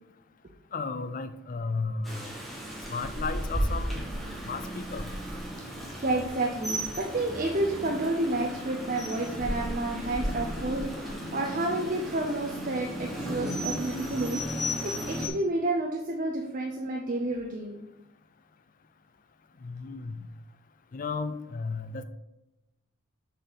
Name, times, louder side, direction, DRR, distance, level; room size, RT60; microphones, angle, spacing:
voice 1, 0.7-2.3 2.9-4.1 4.4-5.1 19.6-20.2 20.9-22.0, left 4 dB, 40° left, 11 dB, 0.4 m, -34 dB
Rain, 2.0-15.3, equal, ahead, 1.0 m, -34 dB
voice 2, 6.0-17.9, right 2 dB, 40° right, 1 dB, 0.6 m, -30 dB
6.4 x 4.0 x 5.1 m, 0.96 s
head